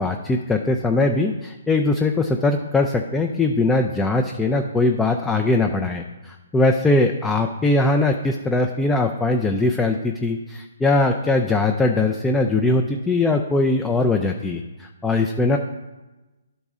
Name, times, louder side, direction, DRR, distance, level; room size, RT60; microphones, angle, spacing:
voice 1, 0.0-15.6, left 2 dB, 10° left, 3 dB, 0.4 m, -21 dB
11.0 x 4.0 x 3.6 m, 1.1 s
hypercardioid pair, 145°, 0 cm